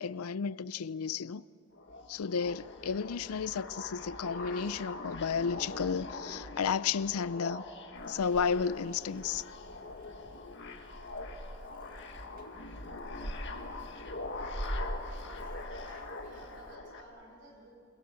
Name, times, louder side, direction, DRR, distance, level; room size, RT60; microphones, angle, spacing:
voice 1, 0.0-1.4 2.1-7.6 8.1-9.4, left 6 dB, 80° left, 0.5 m, -32 dB
sound 1, 1.7-17.0, left 2 dB, 55° left, 1.9 m, -43 dB
Purr / Meow, 8.0-16.8, right 1 dB, 40° right, 1.6 m, -44 dB
voice 2, 15.9-17.7, right 2 dB, 55° right, 6.8 m, -55 dB
29.0 x 22.0 x 7.6 m
head